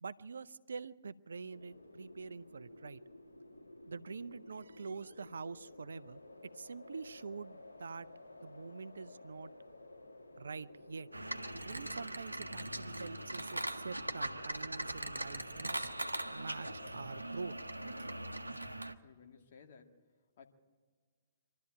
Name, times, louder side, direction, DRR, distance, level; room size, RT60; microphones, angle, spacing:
voice 1, 0.0-3.0 3.9-6.2 6.5-8.1 8.4-9.5 10.4-11.1 11.5-15.9 16.3-17.5 18.0-18.1, right 4 dB, 70° right, 17 dB, 0.6 m, -45 dB
sound 1, 1.5-18.4, left 2 dB, 85° left, 2.8 m, -54 dB
sound 2, 11.1-18.9, right 1 dB, 90° right, 0.9 m, -41 dB
voice 2, 18.4-20.5, left 6 dB, 50° left, 3 dB, 2.2 m, -60 dB
24.5 x 12.5 x 8.8 m, 1.5 s
figure-of-eight pair, 120°, 0 cm